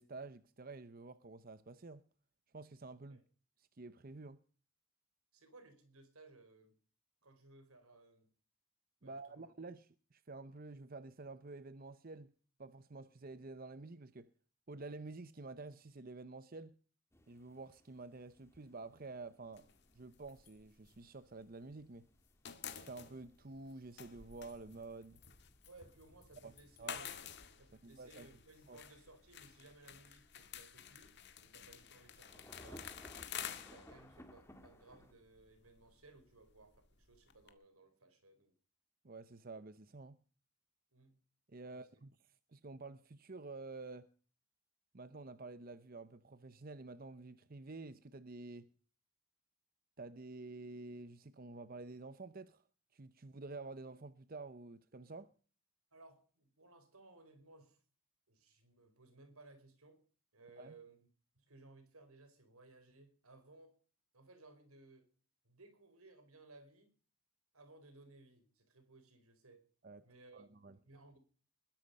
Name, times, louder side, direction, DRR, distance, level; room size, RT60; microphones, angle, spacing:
voice 1, 0.0-2.0 2.5-3.2 3.6-4.4 9.0-12.3 12.6-14.3 14.7-16.8 17.3-19.7 19.9-22.1 22.7-25.2 26.4-26.5 26.8-27.0 27.8-28.3 28.7-28.8 39.0-40.2 41.5-42.1 42.5-44.1 44.9-48.7 50.0-52.6 52.9-55.3 60.6-60.7 69.8-70.0 70.3-70.8, right 3 dB, 40° right, 0.7 m, -50 dB
voice 2, 5.3-6.8 7.2-8.3 9.0-9.5 25.7-27.2 27.6-32.9 33.4-38.6 40.9-41.2 41.6-42.0 55.9-57.8 58.3-60.1 60.3-61.1 61.3-63.8 64.1-65.1 65.4-66.9 67.5-69.7 70.0-71.2, right 2 dB, 85° right, 4.4 m, -61 dB
sound 1, 17.1-35.1, equal, 10° left, 1.8 m, -63 dB
sound 2, 19.5-21.8 22.1-37.5, left 8 dB, 50° left, 1.9 m, -51 dB
21.0 x 11.5 x 5.4 m
head